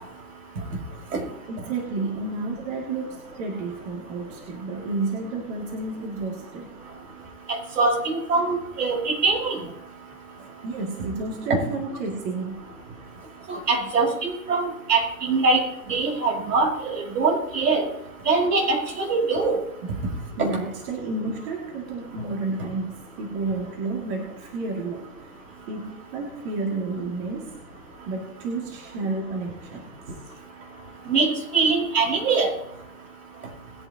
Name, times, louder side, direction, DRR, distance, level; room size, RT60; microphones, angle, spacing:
voice 1, 1.5-6.8 10.6-12.7 19.8-20.0 20.4-25.3 25.7-27.5 28.1-29.9, right 3 dB, 35° right, -1 dB, 2.6 m, -31 dB
voice 2, 7.5-9.6 13.5-15.6 15.9-17.9 18.3-19.6 31.1-32.5, right 4 dB, 70° right, -1 dB, 5.6 m, -23 dB
21.0 x 9.2 x 2.9 m, 0.87 s
hypercardioid pair, 135°, 47 cm